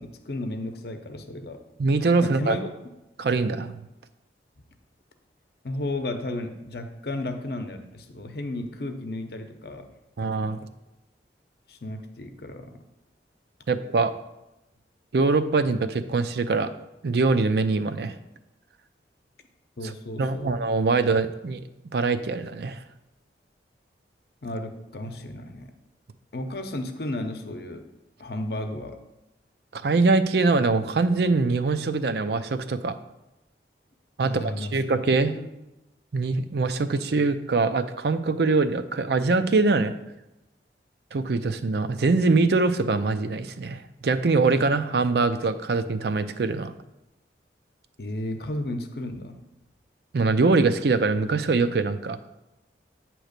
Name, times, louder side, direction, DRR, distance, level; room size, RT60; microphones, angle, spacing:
voice 1, 0.0-1.6 2.2-2.7 5.6-9.9 11.7-12.8 19.8-20.6 24.4-25.7 26.3-27.8 28.2-29.0 34.2-34.8 35.3-35.4 48.0-49.4, left 1 dB, 65° left, 6 dB, 0.7 m, -33 dB
voice 2, 1.8-2.6 3.2-3.7 10.2-10.6 13.7-14.1 15.1-16.7 17.0-18.1 20.2-21.6 21.9-22.8 29.7-33.0 34.2-35.3 36.1-39.9 41.1-46.7 50.1-52.2, right 3 dB, 65° right, 11 dB, 0.5 m, -23 dB
8.9 x 3.0 x 6.6 m, 0.94 s
head